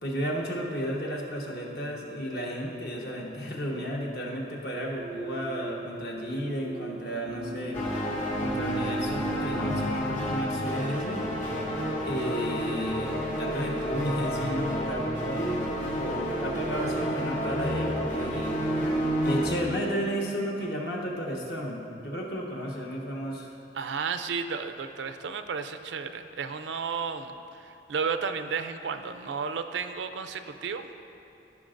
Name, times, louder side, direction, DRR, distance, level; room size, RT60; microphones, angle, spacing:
voice 1, 0.0-7.8 8.4-11.2 12.0-18.6 19.2-23.5, equal, 60° left, -2 dB, 1.3 m, -33 dB
sound 1, 5.0-20.2, right 1 dB, 5° left, 0.4 m, -42 dB
sound 2, 7.7-19.5, equal, 45° left, 1.8 m, -30 dB
voice 2, 23.7-30.9, right 5 dB, 85° right, 9 dB, 0.4 m, -33 dB
15.5 x 6.0 x 2.5 m, 3.0 s
head